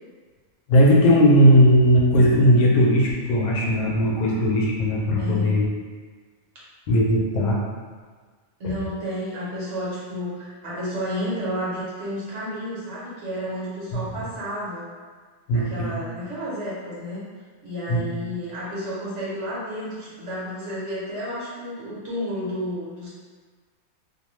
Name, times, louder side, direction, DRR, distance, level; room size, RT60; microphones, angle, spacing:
voice 1, 0.7-5.6 6.9-7.6 13.9-14.1 15.5-16.0 17.9-18.1, equal, 90° left, -3 dB, 1.1 m, -18 dB
voice 2, 5.2-5.6 8.6-14.8 15.5-17.3 17.6-23.1, equal, 60° right, -8 dB, 1.1 m, -31 dB
2.6 x 2.1 x 3.0 m, 1.5 s
omnidirectional pair, 1.5 m